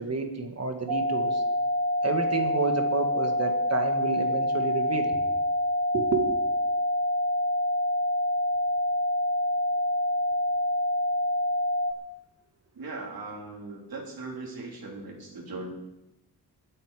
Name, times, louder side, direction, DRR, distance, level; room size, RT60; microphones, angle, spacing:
voice 1, 0.0-1.4 2.0-5.2 5.9-6.4, right 4 dB, 40° right, 5 dB, 1.8 m, -30 dB
sound 1, 0.9-11.9, left 1 dB, 85° right, 1.0 m, -26 dB
voice 2, 12.7-15.7, right 3 dB, 65° right, -1 dB, 3.5 m, -39 dB
22.0 x 8.4 x 5.0 m, 0.91 s
wide cardioid pair, 160°, 39 cm